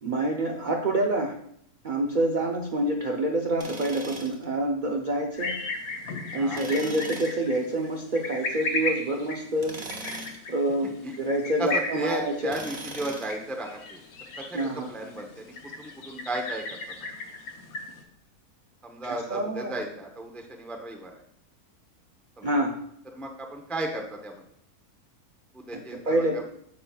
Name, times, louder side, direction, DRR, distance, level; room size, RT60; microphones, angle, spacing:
voice 1, 0.0-1.4 1.8-5.5 6.3-9.8 10.5-10.9 11.2-12.5 14.5-14.9 19.0-19.8 22.4-22.8 25.7-26.5, right 1 dB, 50° right, 1 dB, 0.5 m, -27 dB
Tools, 3.6-4.4 6.5-7.4 9.6-10.5 12.5-13.4, right 2 dB, 35° right, 1.2 m, -39 dB
sound 1, 5.4-18.0, left 3 dB, 70° left, 1.4 m, -36 dB
voice 2, 10.8-11.2 11.6-14.0 14.4-16.8 18.8-21.1 22.4-22.5 23.1-24.3 25.5-26.5, right 1 dB, ahead, 2 dB, 0.5 m, -35 dB
9.4 x 6.9 x 2.3 m, 0.71 s
omnidirectional pair, 1.6 m